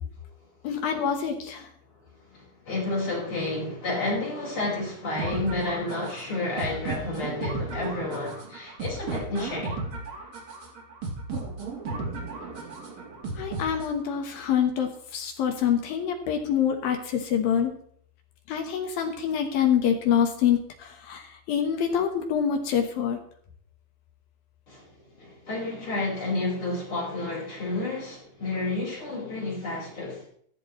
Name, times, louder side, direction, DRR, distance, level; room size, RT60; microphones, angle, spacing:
voice 1, 0.6-1.7 13.4-17.7 18.5-23.2, left 8 dB, 65° left, 2.4 m, -26 dB
voice 2, 2.3-9.8 24.7-24.9 25.2-30.3, left 2 dB, 25° left, 5.6 m, -30 dB
sound 1, 5.2-14.2, right 3 dB, 40° right, 3.2 m, -35 dB
14.5 x 14.0 x 3.2 m
omnidirectional pair, 5.5 m